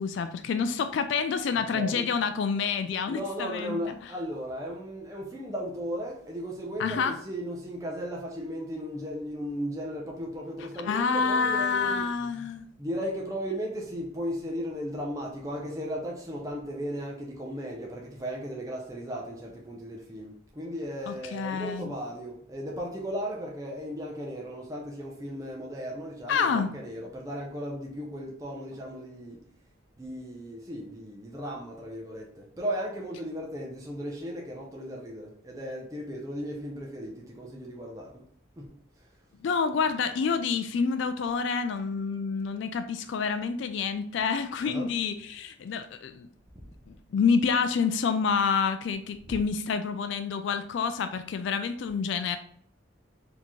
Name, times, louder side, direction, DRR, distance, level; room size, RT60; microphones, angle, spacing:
voice 1, 0.0-4.1 6.8-7.2 10.6-12.7 21.1-21.9 26.3-26.7 39.4-46.3 46.9-52.4, left 5 dB, 65° left, 0.3 m, -28 dB
voice 2, 1.5-2.1 3.1-12.1 12.8-29.4 30.0-38.2 38.6-39.1 44.6-44.9 49.3-49.4, equal, 15° right, 0.5 m, -36 dB
4.2 x 2.8 x 3.0 m
head